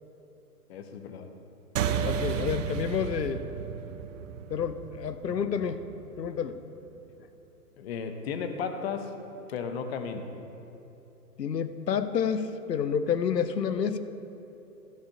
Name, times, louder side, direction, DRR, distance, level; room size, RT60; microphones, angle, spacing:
voice 1, 0.7-1.3 7.8-9.1 9.5-10.3, left 6 dB, 40° left, 7 dB, 0.9 m, -34 dB
sound 1, 1.8-6.6, right 8 dB, 55° right, 0.6 m, -33 dB
voice 2, 2.0-3.4 4.5-5.8 6.2-6.6 11.4-14.0, left 7 dB, 85° left, 12 dB, 0.7 m, -29 dB
13.0 x 11.0 x 2.9 m, 2.9 s
hypercardioid pair, 130°, 48 cm